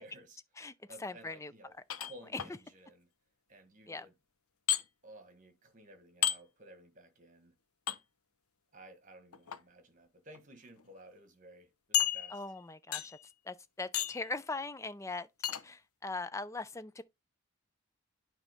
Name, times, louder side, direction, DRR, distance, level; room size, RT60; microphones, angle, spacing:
voice 1, 0.0-0.4 0.9-1.7 2.0-3.1 3.5-4.1 5.0-7.5 8.7-12.4, right 1 dB, 35° right, 1.6 m, -55 dB
voice 2, 1.0-1.5 3.9-4.1 12.3-13.1 13.5-15.3 15.6-17.0, left 3 dB, 15° left, 0.4 m, -40 dB
sound 1, 1.9-2.5 4.7-4.8 6.2-6.4 7.9-8.0 9.3-9.6 10.3-10.4 10.8-10.9 11.9-12.6 12.9-13.3 13.9-14.3 15.4-15.6, left 11 dB, 90° left, 0.7 m, -32 dB
8.9 x 3.2 x 5.2 m
head